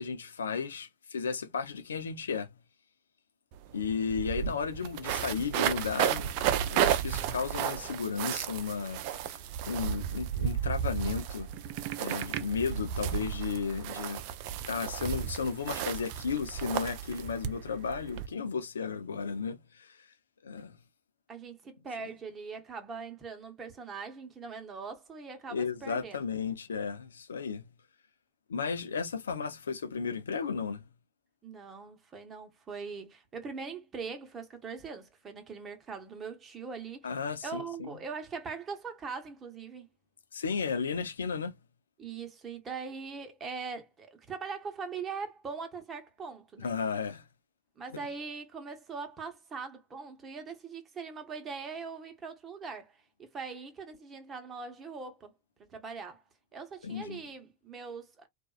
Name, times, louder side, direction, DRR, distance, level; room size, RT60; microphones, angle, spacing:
voice 1, 0.0-2.5 3.7-9.3 9.7-11.5 12.0-14.2 14.7-20.0 20.4-20.8 25.5-27.6 28.5-30.8 37.0-37.9 40.3-41.5 46.6-47.2 56.8-57.2, left 5 dB, 85° left, 0.5 m, -34 dB
sound 1, 3.5-3.6 3.8-18.3, right 9 dB, 55° right, 0.4 m, -33 dB
voice 2, 21.3-26.3 31.4-37.1 37.4-39.9 42.0-46.7 47.8-55.3 55.6-56.2 56.5-58.3, right 5 dB, 25° right, 0.9 m, -41 dB
2.5 x 2.3 x 2.3 m
hypercardioid pair, 95°, 0 cm